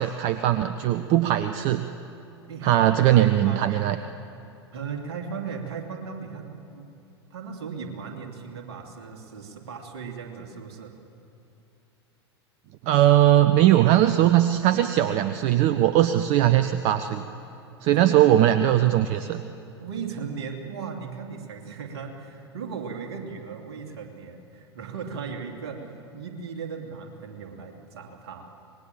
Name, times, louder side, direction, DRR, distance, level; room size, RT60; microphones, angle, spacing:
voice 1, 0.0-1.8 2.6-4.0 12.8-17.2 17.8-19.4, right 13 dB, 45° right, 10 dB, 0.8 m, -20 dB
voice 2, 2.5-3.9 4.7-6.8 7.3-10.9 17.9-18.8 19.8-28.5, right 6 dB, 60° right, 3 dB, 2.9 m, -37 dB
25.0 x 20.5 x 7.2 m, 2.8 s
figure-of-eight pair, 85°, 14 cm